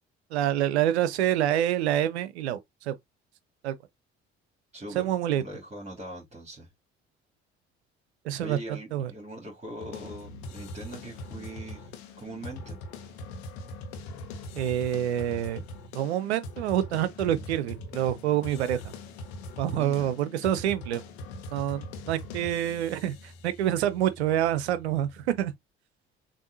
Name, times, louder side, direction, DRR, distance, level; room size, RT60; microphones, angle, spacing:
voice 1, 0.3-2.6 2.9-3.0 3.6-3.7 4.9-5.4 8.2-9.1 14.5-15.6 15.9-18.9 19.6-21.0 21.5-23.2 23.4-25.5, right 11 dB, 75° right, 0.6 m, -27 dB
voice 2, 4.7-6.7 8.4-11.9 12.2-12.8 19.7-20.1, right 1 dB, 20° right, 2.7 m, -41 dB
sound 1, 9.8-25.5, left 2 dB, 70° left, 1.0 m, -42 dB
6.9 x 2.6 x 2.7 m
figure-of-eight pair, 50°, 33 cm